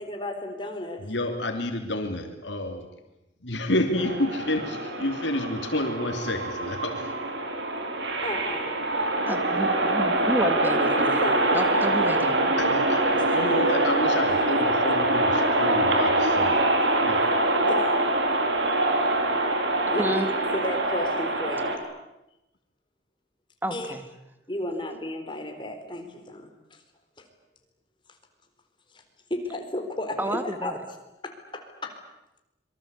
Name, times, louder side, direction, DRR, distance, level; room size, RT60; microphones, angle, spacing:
voice 1, 0.0-1.0 8.2-8.8 9.3-9.4 10.6-11.7 13.1-13.7 16.8-16.9 17.6-18.1 19.9-21.8 23.7-23.9 24.5-26.8 27.2-27.3 29.3-30.8 31.2-32.0, left 1 dB, 25° left, 5 dB, 4.1 m, -33 dB
voice 2, 1.1-2.9 3.4-7.1 12.6-16.6 17.0-17.3, left 1 dB, 75° left, 5 dB, 3.2 m, -29 dB
sound 1, 4.0-21.8, right 2 dB, 80° right, 4.2 m, -24 dB
voice 3, 9.2-11.3 11.5-12.8 20.0-20.3 23.6-24.0 30.2-30.7, equal, 10° right, 8 dB, 2.2 m, -30 dB
26.0 x 24.0 x 8.4 m, 0.91 s
head